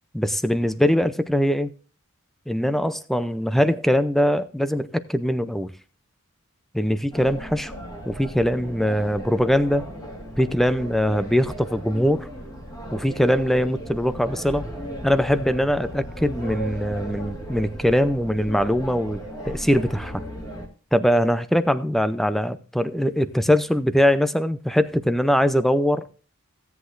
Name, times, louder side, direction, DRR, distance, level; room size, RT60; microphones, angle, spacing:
voice 1, 0.1-1.7 2.5-5.7 6.7-7.7 8.1-9.8 10.4-12.3 12.9-14.6 15.0-20.2 20.9-26.1, equal, ahead, 0.4 m, -22 dB
sound 1, 7.1-20.7, right 1 dB, 15° left, 1.9 m, -36 dB
16.0 x 8.2 x 2.5 m
head